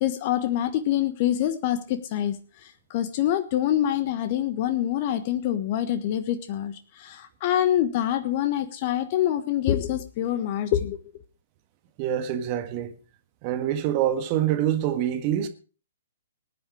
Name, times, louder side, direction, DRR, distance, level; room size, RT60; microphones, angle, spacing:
voice 1, 0.0-11.0, left 11 dB, 35° left, 1.3 m, -26 dB
voice 2, 12.0-13.0 13.4-15.5, right 11 dB, 30° right, 1.7 m, -25 dB
19.5 x 9.9 x 4.9 m
figure-of-eight pair, 120°, 0 cm